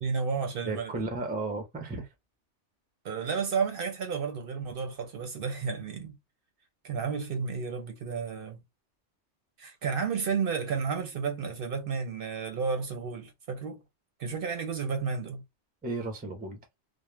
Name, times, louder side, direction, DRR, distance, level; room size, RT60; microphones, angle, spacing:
voice 1, 0.0-0.9 3.0-6.2 6.8-8.6 9.6-13.8 14.2-15.4, right 5 dB, 60° right, 0.7 m, -32 dB
voice 2, 0.7-2.1 15.8-16.6, right 3 dB, 15° right, 0.3 m, -34 dB
2.3 x 2.1 x 3.1 m
omnidirectional pair, 1.2 m